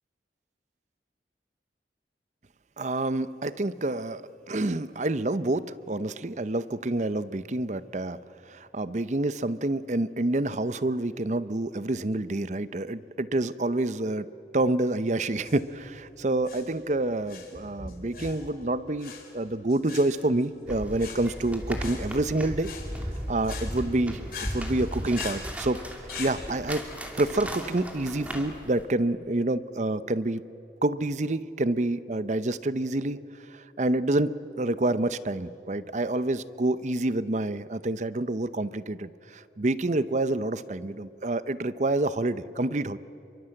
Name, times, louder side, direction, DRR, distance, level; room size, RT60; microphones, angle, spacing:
voice 1, 2.8-4.2 4.5-8.2 8.5-14.3 14.5-22.7 23.3-24.2 24.5-25.8 26.2-26.8 27.2-30.4 30.8-33.2 33.5-34.3 34.6-43.0, right 2 dB, 40° right, 15 dB, 0.7 m, -28 dB
sound 1, 15.3-26.4, left 5 dB, 55° left, 4.5 m, -43 dB
sound 2, 20.7-28.8, equal, 10° right, 2.5 m, -36 dB
30.0 x 23.5 x 7.8 m, 2.9 s
head